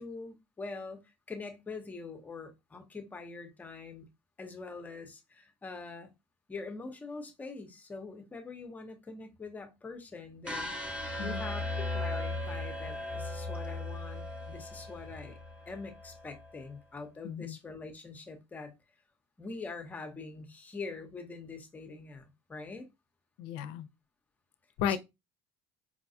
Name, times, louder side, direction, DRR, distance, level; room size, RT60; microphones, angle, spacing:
voice 1, 0.0-4.1 4.4-6.1 6.5-15.4 15.7-18.7 19.4-22.9 24.9-25.0, left 3 dB, 15° left, 0.7 m, -44 dB
sound 1, 10.4-16.5, left 2 dB, 15° right, 0.9 m, -37 dB
voice 2, 17.2-17.6 23.4-23.9 24.8-25.0, left 8 dB, 75° left, 0.5 m, -33 dB
4.7 x 2.3 x 2.6 m
cardioid pair, 135°, 9 cm